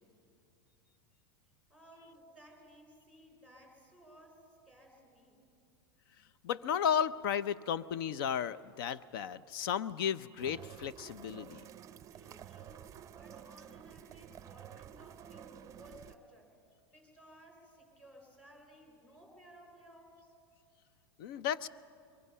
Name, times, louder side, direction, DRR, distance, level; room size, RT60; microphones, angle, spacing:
voice 1, 1.7-5.4 12.1-16.5 16.9-20.3, equal, 10° left, 2 dB, 4.2 m, -58 dB
voice 2, 6.4-11.6 21.2-21.7, left 8 dB, 70° left, 17 dB, 0.7 m, -34 dB
sound 1, 10.4-16.2, right 10 dB, 25° right, 0.6 m, -51 dB
24.0 x 22.0 x 5.6 m, 2.4 s
supercardioid pair, 135°, 13 cm